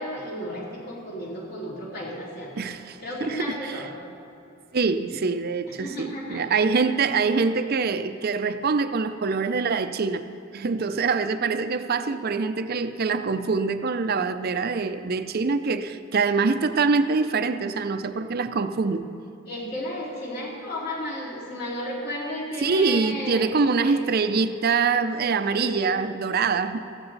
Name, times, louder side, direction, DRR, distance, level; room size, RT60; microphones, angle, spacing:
voice 1, 0.0-2.5 3.0-4.0 5.8-6.4 19.5-24.0 25.5-25.8, equal, 50° left, -4 dB, 3.0 m, -33 dB
voice 2, 2.6-3.8 4.7-10.2 10.5-19.1 22.6-26.8, right 4 dB, 50° right, 10 dB, 0.5 m, -24 dB
14.5 x 14.0 x 4.0 m, 2.8 s
head